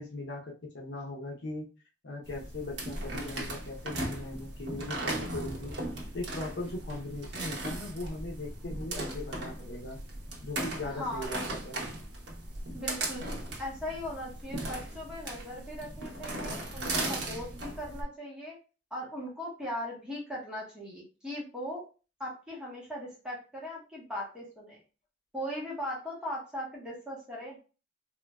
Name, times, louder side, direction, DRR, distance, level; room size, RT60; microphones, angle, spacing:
voice 1, 0.0-1.7 2.0-5.8 6.1-10.0 10.4-11.8, left 2 dB, 70° left, 0 dB, 0.7 m, -39 dB
sound 1, 2.2-18.0, right 1 dB, 85° right, 0.9 m, -37 dB
voice 2, 10.8-11.3 12.7-13.2 13.6-18.6 18.9-21.8 22.2-24.8 25.3-27.6, equal, 5° right, -6 dB, 1.2 m, -39 dB
3.7 x 2.5 x 2.2 m, 0.34 s
head